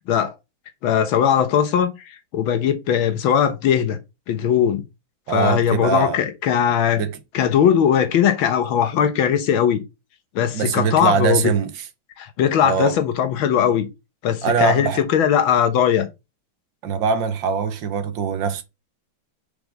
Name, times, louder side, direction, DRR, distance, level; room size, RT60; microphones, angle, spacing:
voice 1, 0.8-4.0 4.3-4.8 5.3-7.0 7.3-9.8 10.4-11.5 12.2-13.9 14.2-16.1, left 9 dB, 90° left, 1.8 m, -19 dB
voice 2, 5.3-6.2 7.0-7.2 10.5-11.7 12.6-12.9 14.4-15.0 16.8-18.6, right 6 dB, 75° right, 1.6 m, -22 dB
5.1 x 4.6 x 5.1 m
omnidirectional pair, 2.1 m